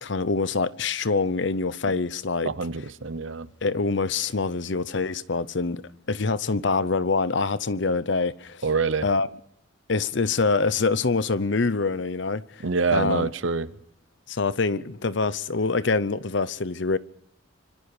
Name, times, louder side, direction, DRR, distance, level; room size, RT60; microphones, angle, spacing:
voice 1, 0.0-2.5 3.6-8.6 9.0-9.3 9.9-12.6 12.9-13.3 14.3-17.0, left 4 dB, 60° left, 0.8 m, -25 dB
voice 2, 2.5-3.5 8.6-9.1 12.6-13.7, right 4 dB, 70° right, 0.9 m, -26 dB
25.5 x 23.0 x 4.9 m
head